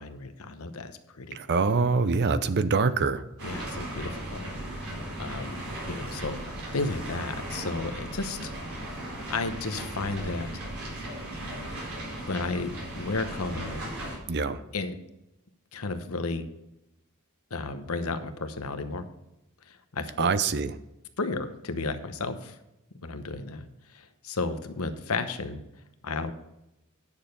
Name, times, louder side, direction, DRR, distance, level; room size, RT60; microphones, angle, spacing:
voice 1, 0.0-1.4 3.4-4.5 5.2-8.5 9.3-10.5 12.3-13.9 14.7-15.0 15.7-16.5 17.5-19.1 19.9-20.3 21.2-22.5 23.0-23.7 24.2-25.6 26.0-26.3, left 3 dB, 75° left, 9 dB, 1.0 m, -33 dB
voice 2, 1.3-3.2 14.3-14.6 20.2-20.7, right 4 dB, 50° right, 13 dB, 0.6 m, -24 dB
sound 1, 3.4-14.2, right 1 dB, 70° right, 4.2 m, -37 dB
10.0 x 6.7 x 5.4 m, 0.91 s
head